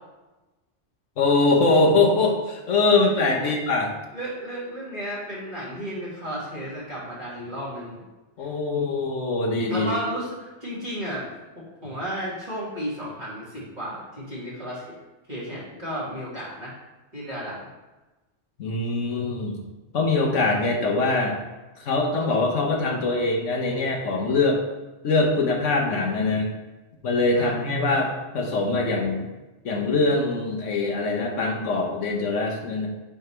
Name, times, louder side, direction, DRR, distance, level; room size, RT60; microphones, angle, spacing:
voice 1, 1.2-3.9 8.4-9.9 18.6-19.6 19.9-21.3 21.8-24.6 25.0-26.5 27.0-29.3 29.6-32.9, left 3 dB, 85° left, 0 dB, 1.3 m, -23 dB
voice 2, 4.1-8.0 9.7-11.3 11.6-14.8 15.3-16.7 17.1-17.6 27.3-27.6, equal, 35° right, -8 dB, 2.4 m, -33 dB
8.7 x 3.4 x 3.3 m, 1.1 s
omnidirectional pair, 1.2 m